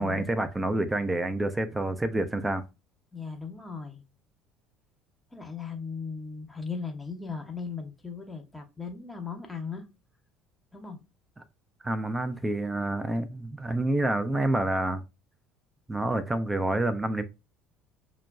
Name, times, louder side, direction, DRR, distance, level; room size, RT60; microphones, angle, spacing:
voice 1, 0.0-2.6 11.8-15.0 15.9-17.2, right 2 dB, 15° right, 0.4 m, -28 dB
voice 2, 3.1-4.0 5.3-9.9 10.7-11.0, left 5 dB, 10° left, 0.8 m, -37 dB
6.5 x 2.2 x 2.3 m
figure-of-eight pair, 60°, 0 cm